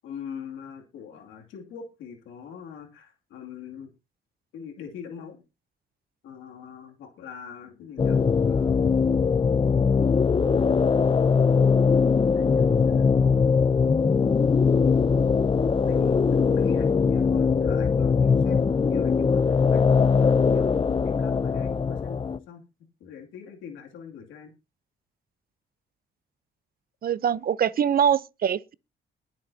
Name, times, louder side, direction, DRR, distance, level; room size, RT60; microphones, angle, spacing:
voice 1, 0.0-3.9 4.5-5.4 6.2-8.8 10.6-11.0 12.3-13.0 15.6-22.6 23.0-24.5, left 7 dB, 90° left, 2.6 m, -42 dB
sound 1, 8.0-22.4, left 5 dB, 25° left, 0.6 m, -21 dB
voice 2, 27.0-28.7, right 8 dB, 50° right, 0.7 m, -23 dB
22.0 x 7.7 x 2.8 m
cardioid pair, 90°, 20 cm